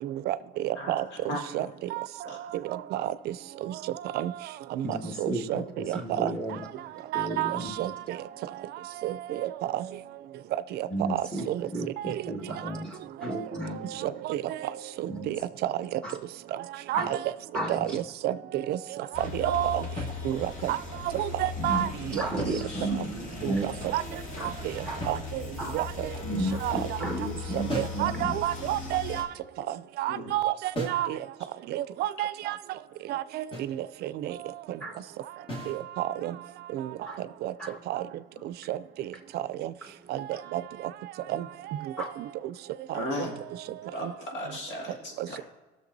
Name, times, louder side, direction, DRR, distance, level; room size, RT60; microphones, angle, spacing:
voice 1, 0.0-3.3 3.6-6.4 7.1-8.2 8.8-9.9 10.7-11.7 12.0-12.3 12.6-12.7 13.2-13.5 13.7-16.0 16.5-17.3 17.7-19.9 20.2-22.6 23.0-23.1 23.4-25.4 25.7-26.1 26.6-27.0 27.5-29.3 29.7-31.2 31.7-32.6 33.1-34.8 35.7-36.4 36.7-37.5 37.9-38.0 38.4-39.7 40.1-40.9 41.3-42.5 42.9-43.3 44.0-44.1 45.2-45.3, right 13 dB, 75° right, 0.4 m, -31 dB
voice 2, 4.8-6.6 7.1-7.9 10.9-14.1 15.1-15.4 16.0-16.1 16.9-17.1 17.5-18.0 21.6-24.5 24.9-25.0 25.6-25.8 26.2-28.4 34.8-35.0 37.1-37.2 37.6-37.8 42.0-42.1, right 1 dB, 5° left, 1.5 m, -34 dB
sound 1, 19.1-29.2, left 4 dB, 50° left, 1.7 m, -38 dB
sound 2, 20.0-20.7 22.2-23.2 25.0-25.8 27.7-28.1 30.7-31.1 33.5-33.8 35.5-35.9, left 1 dB, 30° left, 1.8 m, -38 dB
voice 3, 42.9-43.4 43.9-45.4, left 1 dB, 85° left, 2.3 m, -36 dB
17.0 x 6.6 x 2.7 m
cardioid pair, 110°, 17 cm